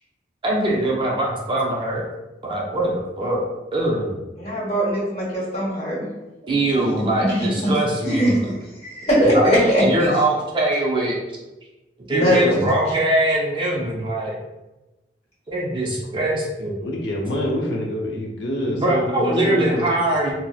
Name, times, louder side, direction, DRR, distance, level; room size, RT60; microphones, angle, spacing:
voice 1, 0.4-2.0 2.4-3.4 3.7-4.2 6.4-8.3 9.3-11.2 12.1-14.4 15.5-16.8 18.8-20.3, right 1 dB, 25° right, -2 dB, 0.4 m, -22 dB
voice 2, 4.4-6.1 7.0-7.7 8.0-8.5 8.8-10.1 12.1-12.7, equal, 35° left, -6 dB, 1.2 m, -20 dB
voice 3, 16.8-19.8, equal, 80° left, -2 dB, 0.7 m, -26 dB
4.1 x 2.0 x 2.3 m, 1.0 s
head